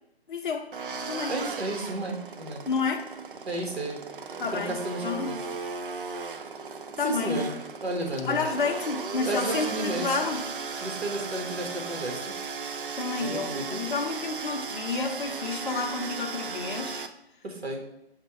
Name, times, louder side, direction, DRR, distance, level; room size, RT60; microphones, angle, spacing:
voice 1, 0.3-0.7 1.1-1.4 2.7-3.1 4.4-5.4 7.0-7.5 8.3-10.4 12.9-17.1, left 4 dB, 50° left, 2 dB, 0.6 m, -30 dB
sound 1, 0.7-17.1, right 5 dB, 55° right, 0.4 m, -36 dB
voice 2, 1.3-2.6 3.4-4.0 4.5-5.4 7.0-7.6 7.8-8.4 9.2-10.2 10.8-12.4 13.2-13.8 17.4-17.8, right 1 dB, 70° right, 1 dB, 1.3 m, -32 dB
5.4 x 2.2 x 4.3 m, 0.83 s
figure-of-eight pair, 155°, 32 cm